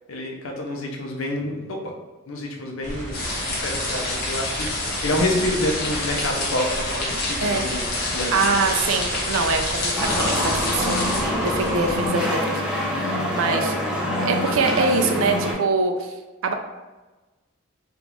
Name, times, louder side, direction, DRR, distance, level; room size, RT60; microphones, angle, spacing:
voice 1, 0.1-1.9 2.3-3.2 3.5-7.9 8.1-8.5, left 1 dB, 80° left, 0 dB, 0.7 m, -28 dB
sound 1, 2.8-12.1, equal, 35° right, 0.9 m, -35 dB
sound 2, 3.1-11.2, left 2 dB, 50° left, 0.8 m, -27 dB
voice 2, 8.3-12.6 13.0-13.7 14.2-16.1 16.4-16.5, right 4 dB, 75° right, 5 dB, 0.4 m, -24 dB
sound 3, 10.0-15.5, left 1 dB, 5° right, 0.5 m, -25 dB
3.5 x 2.5 x 3.0 m, 1.2 s
head